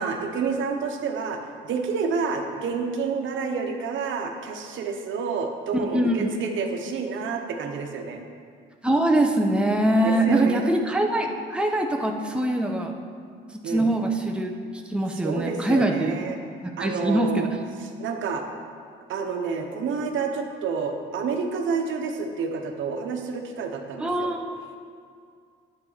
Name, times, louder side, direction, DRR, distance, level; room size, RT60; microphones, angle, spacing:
voice 1, 0.0-8.2 10.0-10.7 13.6-13.9 15.2-16.4 16.8-17.5 18.0-18.4 19.1-24.3, right 5 dB, 75° right, 3 dB, 1.0 m, -29 dB
voice 2, 5.9-6.4 8.8-12.9 13.6-14.5 14.9-16.2 16.6-17.5 24.0-24.5, right 1 dB, 5° right, 2 dB, 0.9 m, -23 dB
9.5 x 8.1 x 4.1 m, 2.2 s
cardioid pair, 90°, 20 cm